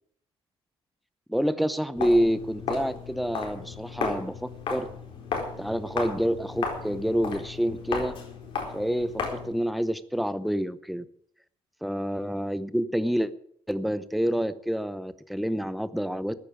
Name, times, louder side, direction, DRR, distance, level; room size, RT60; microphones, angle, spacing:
voice 1, 1.3-4.9 5.6-8.1 8.7-11.1 11.8-13.3 13.7-16.3, equal, ahead, 14 dB, 0.7 m, -28 dB
Walk footsteps, 1.9-9.6, left 5 dB, 60° left, 4.4 m, -34 dB
14.5 x 9.7 x 8.6 m, 0.65 s
cardioid pair, 160°, 10 cm